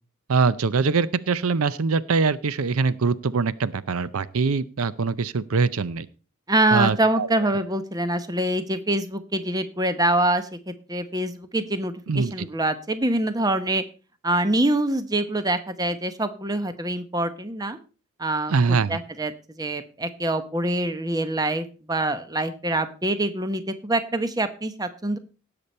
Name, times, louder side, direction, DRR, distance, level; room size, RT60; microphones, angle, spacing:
voice 1, 0.3-6.1 6.7-7.3 12.1-12.5 18.5-19.0, right 4 dB, 85° right, 17 dB, 0.6 m, -23 dB
voice 2, 6.5-13.8 14.2-17.8 18.2-19.3 19.6-25.2, right 1 dB, 15° right, 10 dB, 0.8 m, -25 dB
17.5 x 6.9 x 4.3 m, 0.35 s
head